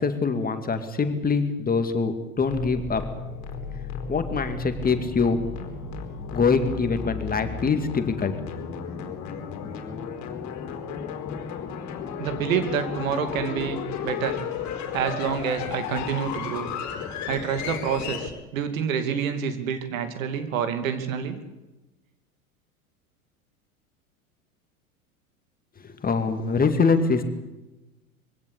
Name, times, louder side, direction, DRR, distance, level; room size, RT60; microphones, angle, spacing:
voice 1, 0.0-3.0 4.1-5.4 6.3-8.6 25.8-27.2, left 4 dB, 20° left, 8 dB, 2.3 m, -24 dB
sound 1, 2.4-18.3, left 6 dB, 40° left, 4.1 m, -34 dB
voice 2, 12.2-14.4 14.9-16.7 17.3-21.4, right 7 dB, 65° right, 9 dB, 2.8 m, -28 dB
23.5 x 16.5 x 8.5 m, 1.0 s
figure-of-eight pair, 85°, 43 cm